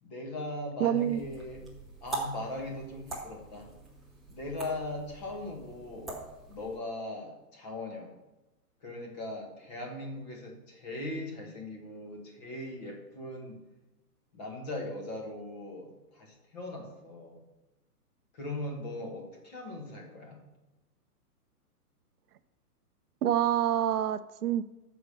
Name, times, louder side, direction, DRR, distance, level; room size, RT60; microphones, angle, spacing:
voice 1, 0.0-1.7 2.0-3.7 4.3-6.2 6.5-8.2 8.8-13.6 14.3-17.4 18.3-20.4, left 1 dB, 25° left, 1 dB, 1.5 m, -39 dB
voice 2, 0.8-1.2 23.2-24.8, right 11 dB, 70° right, 12 dB, 0.6 m, -27 dB
sound 1, 0.9-6.8, right 2 dB, ahead, 0.4 m, -43 dB
6.9 x 5.1 x 6.6 m, 1.0 s
hypercardioid pair, 170°, 47 cm